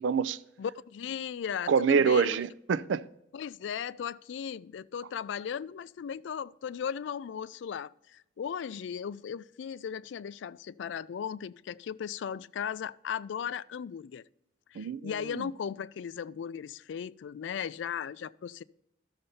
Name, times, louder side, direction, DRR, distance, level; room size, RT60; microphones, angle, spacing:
voice 1, 0.0-0.4 1.7-3.0 14.8-15.1 15.4-15.5, right 6 dB, 75° right, 0.4 m, -26 dB
voice 2, 0.6-2.4 3.3-14.2 14.7-18.6, left 7 dB, 75° left, 0.3 m, -37 dB
13.5 x 6.5 x 2.8 m
head